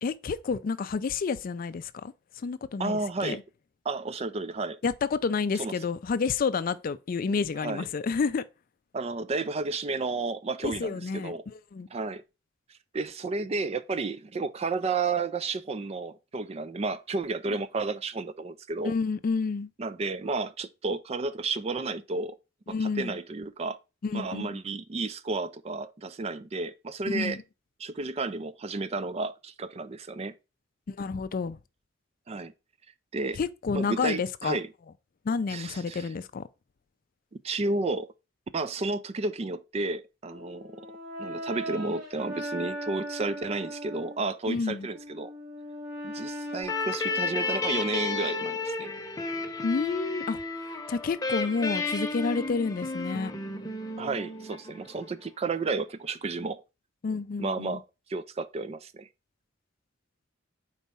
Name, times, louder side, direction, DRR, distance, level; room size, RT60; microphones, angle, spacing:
voice 1, 0.0-3.4 4.8-8.5 10.6-11.9 17.5-17.6 18.8-19.7 22.7-23.2 24.0-24.6 27.0-27.4 30.9-31.6 33.4-34.6 35.2-36.5 44.5-44.9 49.6-50.4 50.9-53.3 57.0-57.8, left 4 dB, 45° left, 0.4 m, -30 dB
voice 2, 2.8-3.4 3.8-4.8 5.6-5.7 7.6-7.9 8.9-11.4 11.9-12.2 12.9-18.9 19.8-22.4 22.8-23.8 24.1-27.4 27.8-30.3 32.3-32.5 33.1-33.4 33.7-34.7 35.5-36.1 37.4-38.1 38.5-40.8 41.2-45.3 46.0-48.9 54.0-56.6 57.4-57.8 58.1-59.1, right 3 dB, 30° right, 0.4 m, -32 dB
Brass instrument, 40.2-44.2 44.8-48.8, equal, 90° right, 2.9 m, -39 dB
sound 1, 46.6-55.1, left 3 dB, 20° left, 0.9 m, -33 dB
4.5 x 4.2 x 5.3 m
head